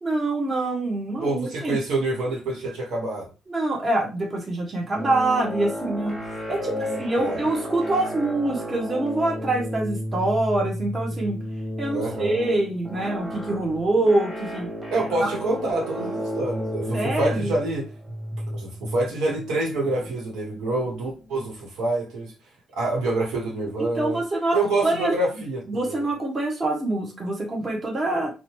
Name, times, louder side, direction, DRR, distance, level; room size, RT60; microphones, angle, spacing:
voice 1, 0.0-1.8 3.5-6.2 6.5-6.7 7.0-11.4 11.8-14.7 15.2-15.3 16.9-17.5 23.9-28.3, right 2 dB, 30° right, 0.9 m, -25 dB
voice 2, 1.2-3.3 6.6-7.4 11.9-12.4 14.9-17.9 18.5-22.3 22.8-24.2 24.5-26.0, right 2 dB, 90° right, 1.0 m, -27 dB
sound 1, 4.9-21.5, equal, 10° right, 1.2 m, -33 dB
2.7 x 2.2 x 3.0 m
cardioid pair, 90°, 0 cm